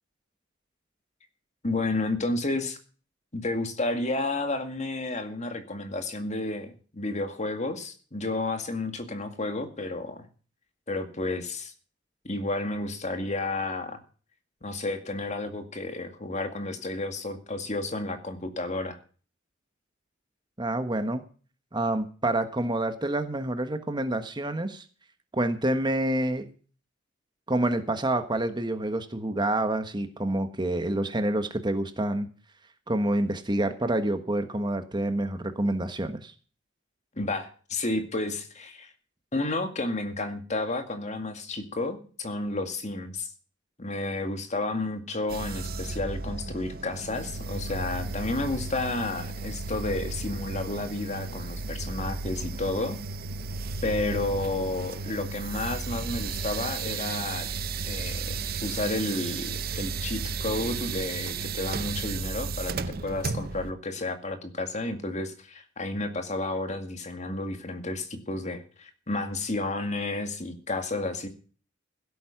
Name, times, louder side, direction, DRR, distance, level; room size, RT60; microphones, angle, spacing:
voice 1, 1.6-2.8 3.3-10.2 10.9-11.7 12.2-14.0 14.6-19.0 37.2-38.9 39.3-43.3 43.8-53.0 53.8-57.5 57.9-71.3, left 2 dB, 35° left, 7 dB, 2.1 m, -31 dB
voice 2, 20.6-21.2 21.7-24.8 25.3-26.5 27.5-32.3 32.9-36.3, right 1 dB, 20° right, 9 dB, 1.3 m, -27 dB
sound 1, 45.3-63.7, right 4 dB, 50° right, 0.7 m, -34 dB
16.0 x 8.5 x 5.9 m, 0.40 s
head